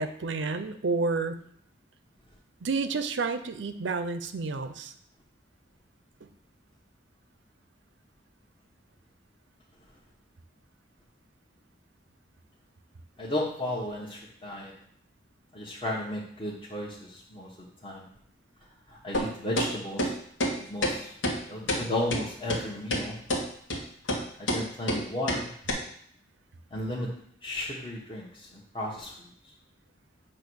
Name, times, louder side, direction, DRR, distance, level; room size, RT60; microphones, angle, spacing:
voice 1, 0.0-1.4 2.6-4.9, right 4 dB, 70° right, 10 dB, 0.6 m, -30 dB
voice 2, 13.2-14.7 15.5-18.1 18.9-20.1 20.5-21.1 21.5-23.2 24.4-25.5 26.7-27.1 27.4-29.3, left 1 dB, 30° left, -6 dB, 1.1 m, -34 dB
sound 1, 19.1-19.3 19.6-19.7 20.0-20.1 20.4-20.5 20.8-20.9 21.2-21.4 21.7-21.8 22.1-22.2 22.5-22.6 22.9-23.0 23.3-23.4 23.7-23.8 24.1-24.2 24.5-24.6 24.9-25.0 25.3-25.4 25.7-25.8, equal, 90° left, 1.6 m, -27 dB
8.5 x 3.0 x 6.2 m, 0.65 s
head